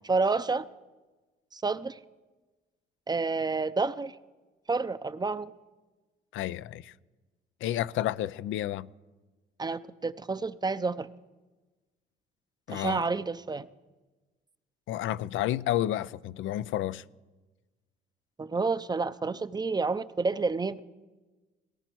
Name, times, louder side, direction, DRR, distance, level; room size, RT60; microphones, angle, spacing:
voice 1, 0.1-0.6 1.5-2.0 3.1-4.2 4.7-5.5 9.6-11.1 12.7-13.7 18.4-20.8, right 4 dB, 20° right, 0.5 m, -29 dB
voice 2, 6.3-6.9 7.6-8.9 12.7-13.1 14.9-17.0, left 13 dB, 80° left, 0.4 m, -31 dB
18.0 x 17.5 x 4.6 m
cardioid pair, 90°, 20 cm